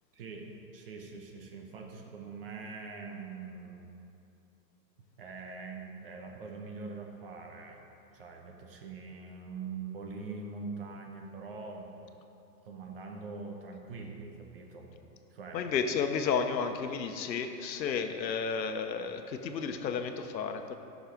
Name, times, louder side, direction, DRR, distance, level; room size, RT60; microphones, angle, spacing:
voice 1, 0.1-0.5 0.7-3.8 5.2-11.9 12.6-14.9 15.3-15.6, right 4 dB, 35° right, 2 dB, 1.0 m, -43 dB
voice 2, 15.5-20.8, left 6 dB, 80° left, 7 dB, 1.1 m, -32 dB
12.0 x 6.5 x 5.1 m, 2.8 s
hypercardioid pair, 175°, 50 cm